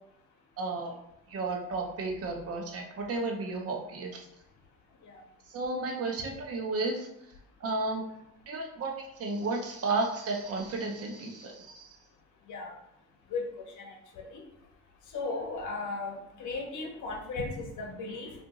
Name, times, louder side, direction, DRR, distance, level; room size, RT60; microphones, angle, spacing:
voice 1, 0.6-1.0 1.3-4.3 5.5-7.1 7.6-8.0 8.5-12.0, right 3 dB, 50° right, 2 dB, 0.8 m, -33 dB
voice 2, 13.3-14.4 15.1-18.3, left 3 dB, 75° left, 1 dB, 0.8 m, -36 dB
2.7 x 2.5 x 3.8 m, 0.78 s
cardioid pair, 90°, 30 cm